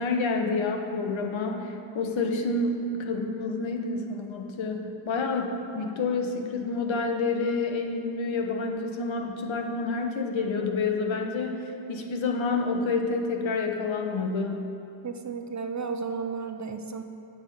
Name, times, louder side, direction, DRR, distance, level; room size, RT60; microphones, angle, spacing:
voice 1, 0.0-14.6, left 3 dB, 75° left, 3 dB, 1.3 m, -28 dB
voice 2, 15.0-17.0, right 5 dB, 35° right, 7 dB, 0.8 m, -33 dB
9.8 x 6.2 x 7.8 m, 2.7 s
cardioid pair, 85°, 48 cm